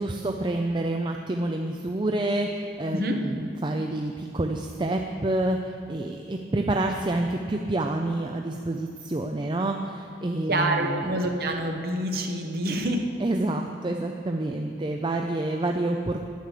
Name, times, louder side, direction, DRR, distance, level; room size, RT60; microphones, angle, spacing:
voice 1, 0.0-11.1 13.2-16.2, right 2 dB, 25° right, 3 dB, 0.4 m, -28 dB
voice 2, 10.5-13.1, right 1 dB, 55° right, 3 dB, 1.2 m, -26 dB
9.7 x 9.4 x 6.6 m, 2.3 s
head